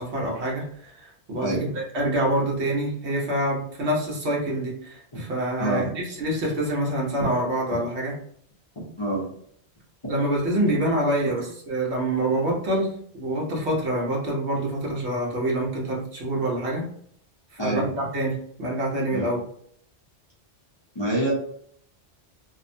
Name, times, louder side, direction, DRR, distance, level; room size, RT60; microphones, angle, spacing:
voice 1, 0.0-1.7 1.9-8.1 10.1-16.8 17.5-19.4, right 1 dB, 75° right, -3 dB, 1.2 m, -26 dB
voice 2, 17.6-17.9 19.1-19.2 20.9-21.3, right 1 dB, 30° left, -7 dB, 0.6 m, -26 dB
2.9 x 2.1 x 2.6 m, 0.63 s
omnidirectional pair, 1.2 m